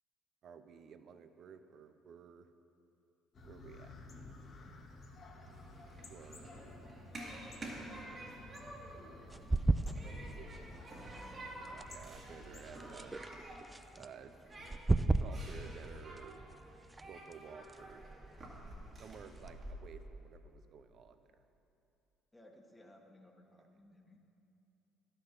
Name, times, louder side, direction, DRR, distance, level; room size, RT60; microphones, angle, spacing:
voice 1, 0.4-2.5 3.4-3.9 6.1-6.9 9.9-10.5 11.7-13.2 13.9-14.4 15.2-16.4 17.1-18.1 18.9-21.4, right 7 dB, 55° right, 10 dB, 0.6 m, -54 dB
sound 1, 3.3-12.9, left 2 dB, 45° left, 1.4 m, -53 dB
Human group actions, 5.4-19.7, right 1 dB, 40° right, 2.1 m, -51 dB
voice 2, 7.1-9.2 9.9-11.6 22.3-24.2, left 1 dB, 10° left, 2 dB, 1.3 m, -61 dB
sound 2, 9.3-19.6, right 2 dB, 15° right, 0.3 m, -38 dB
11.5 x 6.6 x 6.0 m, 2.7 s
cardioid pair, 90°, 0 cm